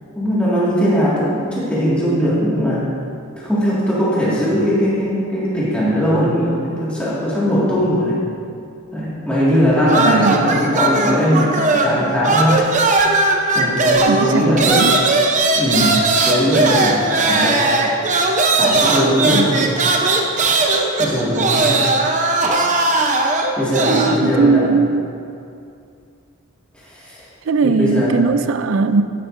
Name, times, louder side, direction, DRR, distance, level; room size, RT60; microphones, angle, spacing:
voice 1, 0.2-2.9 3.4-8.2 8.9-12.7 13.5-14.9 15.6-18.0 18.6-19.7 21.0-21.9 23.6-24.7 26.7-27.2 27.6-28.2, equal, 5° left, -9 dB, 1.9 m, -19 dB
sound 1, 9.9-12.0 12.2-24.2, right 3 dB, 35° right, 0.7 m, -18 dB
voice 2, 10.0-10.6 14.0-14.9 19.3-19.6 23.9-25.1 27.5-29.0, right 4 dB, 65° right, 11 dB, 0.4 m, -19 dB
11.0 x 10.0 x 2.6 m, 2.5 s
head